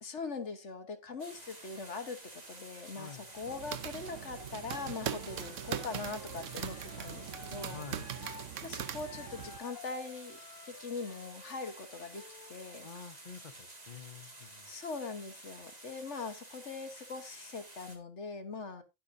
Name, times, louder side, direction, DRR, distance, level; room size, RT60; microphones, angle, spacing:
voice 1, 0.0-7.8 8.6-10.4 10.6-12.2 12.5-12.9 14.6-18.8, left 4 dB, 60° left, 8 dB, 1.6 m, -41 dB
sound 1, 1.2-18.0, right 2 dB, 30° right, 2.3 m, -51 dB
voice 2, 2.9-3.3 7.7-8.1 12.8-14.7, left 6 dB, 40° left, 8 dB, 1.0 m, -48 dB
sound 2, 3.3-9.6, right 9 dB, 70° right, 1.1 m, -41 dB
Wind instrument woodwind instrument, 4.9-8.5 8.7-12.6, left 5 dB, 85° left, 1.6 m, -53 dB
11.5 x 10.0 x 2.7 m, 0.24 s
omnidirectional pair, 1.4 m